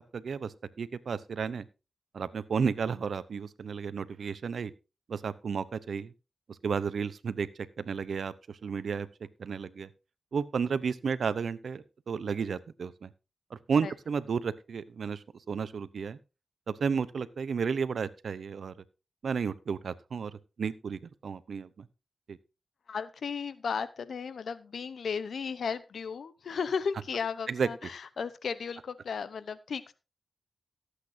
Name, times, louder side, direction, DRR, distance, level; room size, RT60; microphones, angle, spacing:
voice 1, 0.0-1.7 2.1-4.7 5.1-6.1 6.5-7.5 7.8-9.1 9.4-9.9 10.3-13.1 13.5-16.2 16.7-18.8 19.2-20.3 20.6-21.9 22.3-22.4 27.5-27.7, right 6 dB, 80° right, 16 dB, 0.7 m, -32 dB
voice 2, 22.9-30.0, left 6 dB, 80° left, 16 dB, 0.7 m, -35 dB
18.0 x 8.2 x 2.7 m, 0.29 s
cardioid pair, 45°, 0 cm